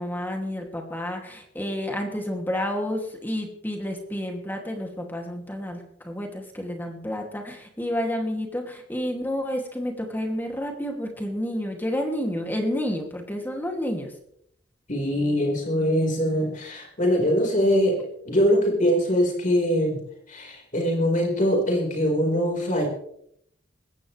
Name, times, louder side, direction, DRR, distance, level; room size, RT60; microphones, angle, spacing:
voice 1, 0.0-14.1, equal, 10° left, 2 dB, 2.6 m, -30 dB
voice 2, 14.9-20.0 20.3-22.9, equal, 45° left, 0 dB, 4.7 m, -23 dB
20.0 x 17.0 x 3.4 m, 0.70 s
head